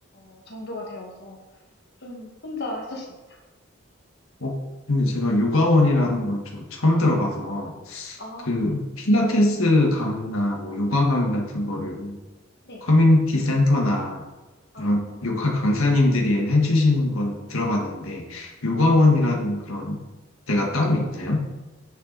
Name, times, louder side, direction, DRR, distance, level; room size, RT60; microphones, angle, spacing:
voice 1, 0.1-1.4 2.0-3.4 8.2-8.7 12.7-12.8 14.7-15.2, left 2 dB, 50° left, -1 dB, 1.8 m, -37 dB
voice 2, 4.9-8.2 8.5-12.2 12.8-14.2 14.8-20.0 20.5-21.4, left 2 dB, 80° left, 0 dB, 1.7 m, -21 dB
9.3 x 7.0 x 4.1 m, 1.1 s
head